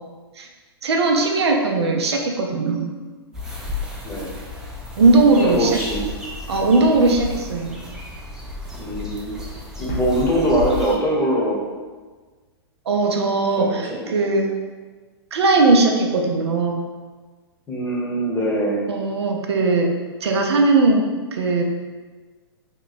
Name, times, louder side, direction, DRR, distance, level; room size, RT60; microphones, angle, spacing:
voice 1, 0.8-2.9 5.0-5.8 6.5-7.8 12.9-14.5 15.3-16.8 18.9-19.9 20.2-21.6, right 3 dB, 80° right, 2 dB, 0.5 m, -19 dB
sound 1, 3.3-11.0, left 3 dB, 5° right, 0.5 m, -33 dB
voice 2, 5.4-6.1 8.8-9.3 9.8-11.6 13.6-14.3 17.7-18.8, right 1 dB, 15° left, -4 dB, 0.9 m, -22 dB
sound 2, 9.9-12.4, equal, 65° left, 1.0 m, -35 dB
3.0 x 2.2 x 4.0 m, 1.4 s
hypercardioid pair, 120°, 14 cm